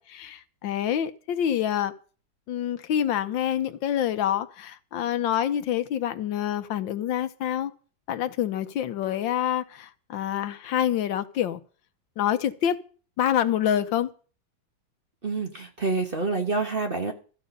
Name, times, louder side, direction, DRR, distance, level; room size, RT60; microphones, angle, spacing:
voice 1, 0.0-1.9 2.5-7.7 8.1-11.6 12.2-12.8 13.2-14.1, left 10 dB, 75° left, 1.5 m, -27 dB
voice 2, 15.2-17.1, right 3 dB, 35° right, 1.2 m, -27 dB
14.0 x 8.5 x 5.3 m
omnidirectional pair, 2.1 m